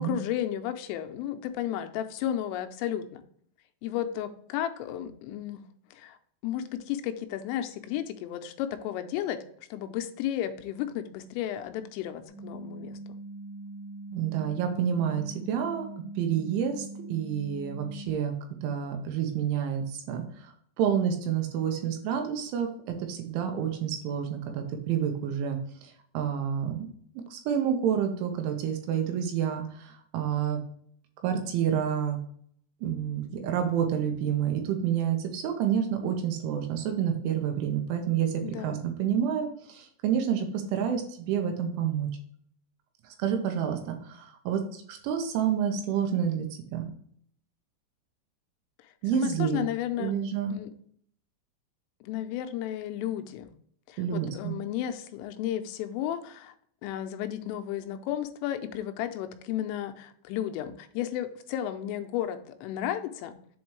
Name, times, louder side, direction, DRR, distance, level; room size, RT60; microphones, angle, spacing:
voice 1, 0.0-3.2 3.8-5.6 5.9-6.2 6.4-9.4 9.7-13.2 38.4-38.8 49.1-50.1 50.5-50.7 52.0-53.5 53.9-56.5 56.8-63.4, left 11 dB, 85° left, 8 dB, 3.2 m, -33 dB
sound 1, 12.3-18.1, right 2 dB, 35° right, 2.0 m, -42 dB
voice 2, 14.1-15.9 16.2-20.2 20.8-22.7 23.1-25.6 26.1-26.8 27.3-30.6 31.2-32.2 32.8-38.3 38.6-40.5 40.7-41.0 41.3-42.1 43.2-46.5 46.7-46.9 49.0-49.6 50.0-50.5 54.0-54.5, right 8 dB, 80° right, 4 dB, 3.2 m, -28 dB
7.9 x 4.3 x 3.1 m, 0.62 s
omnidirectional pair, 5.7 m